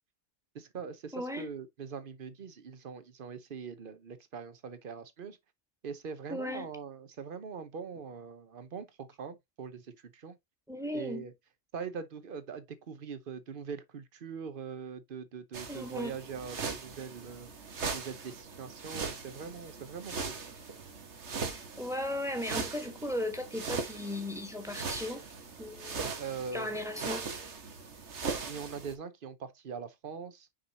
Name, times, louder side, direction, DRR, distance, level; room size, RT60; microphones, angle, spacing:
voice 1, 0.5-5.4 5.8-10.4 10.9-11.3 11.7-17.5 17.9-20.4 26.2-26.7 28.5-30.5, right 6 dB, 55° right, 1.0 m, -42 dB
voice 2, 1.1-1.5 6.3-6.7 10.7-11.2 15.7-16.2 21.8-25.3 25.6-26.1 26.5-27.3, left 1 dB, 5° right, 1.3 m, -36 dB
sound 1, 15.5-28.9, right 4 dB, 80° right, 1.6 m, -40 dB
6.4 x 5.4 x 2.8 m
omnidirectional pair, 1.2 m